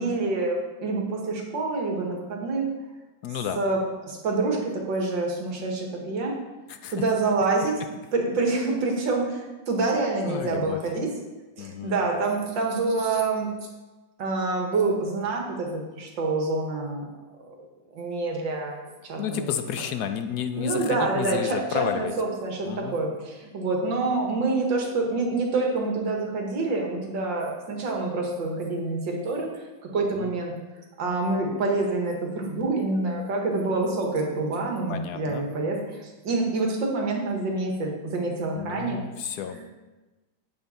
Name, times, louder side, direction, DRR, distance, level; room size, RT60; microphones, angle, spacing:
voice 1, 0.0-2.7 3.6-6.3 6.9-7.7 8.1-11.1 11.6-13.5 14.2-17.1 17.5-17.6 17.9-19.5 20.6-30.5 31.0-39.0 39.5-39.6, right 3 dB, 90° right, 0 dB, 2.3 m, -27 dB
voice 2, 3.2-3.6 6.7-6.9 10.2-10.8 11.6-11.9 19.2-22.1 22.7-23.0 30.1-30.3 34.9-35.4 38.5-39.6, left 8 dB, 70° left, 8 dB, 1.1 m, -31 dB
9.8 x 8.0 x 4.3 m, 1.2 s
omnidirectional pair, 1.9 m